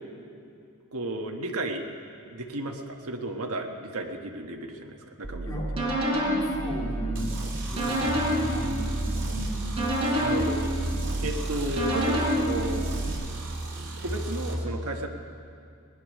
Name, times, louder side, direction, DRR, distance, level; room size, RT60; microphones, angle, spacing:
voice 1, 0.9-1.9 2.3-5.5 10.2-10.6 11.2-12.9 14.0-15.1, right 1 dB, 80° right, 2 dB, 1.3 m, -33 dB
sound 1, 5.2-13.1, right 1 dB, 25° right, 3.7 m, -28 dB
voice 2, 5.5-5.8 6.2-9.9 11.0-11.3, equal, 15° left, -4 dB, 2.6 m, -37 dB
sound 2, 7.1-14.5, right 1 dB, 55° right, 2.8 m, -34 dB
18.5 x 10.5 x 6.5 m, 2.5 s
head